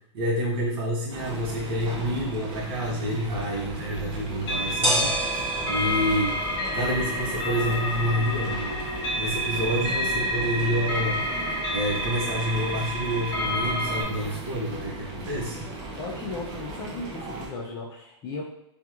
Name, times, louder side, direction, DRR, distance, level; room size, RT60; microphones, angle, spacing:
voice 1, 0.1-5.1 5.7-6.4 6.7-8.8 9.2-11.2 11.7-15.6, equal, 50° right, -3 dB, 1.0 m, -28 dB
sound 1, 1.1-17.5, right 2 dB, 30° right, 0.5 m, -38 dB
sound 2, 3.7-13.8, equal, 15° right, 1.4 m, -35 dB
sound 3, 4.4-14.0, equal, 55° left, 0.7 m, -29 dB
voice 2, 16.0-18.4, left 3 dB, 20° left, -3 dB, 0.4 m, -36 dB
2.9 x 2.5 x 2.4 m, 0.77 s
hypercardioid pair, 150°, 15 cm